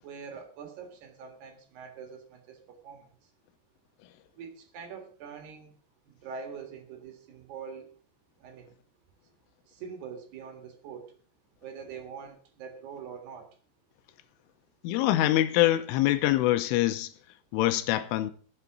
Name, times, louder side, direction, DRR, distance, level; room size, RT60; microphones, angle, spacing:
voice 1, 0.0-3.3 4.3-5.8 6.1-8.0 8.4-8.7 9.7-11.1 11.6-13.5, right 6 dB, 60° right, 3.5 m, -44 dB
voice 2, 14.8-17.1 17.5-18.3, left 14 dB, 80° left, 3.2 m, -24 dB
15.0 x 7.9 x 6.0 m
omnidirectional pair, 5.8 m